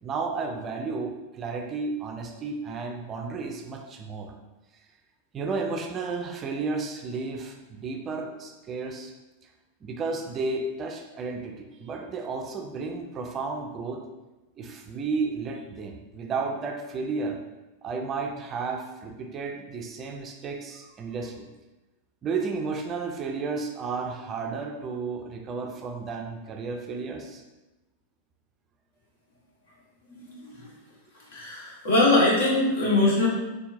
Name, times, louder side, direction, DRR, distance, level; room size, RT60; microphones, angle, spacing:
voice 1, 0.0-4.3 5.3-9.1 9.8-14.0 14.6-17.4 17.8-21.5 22.2-27.4, right 4 dB, 25° right, 3 dB, 0.4 m, -32 dB
voice 2, 30.1-30.7 31.3-33.3, left 2 dB, 60° left, -4 dB, 1.3 m, -22 dB
4.3 x 3.4 x 2.6 m, 1.1 s
figure-of-eight pair, 90°, 0 cm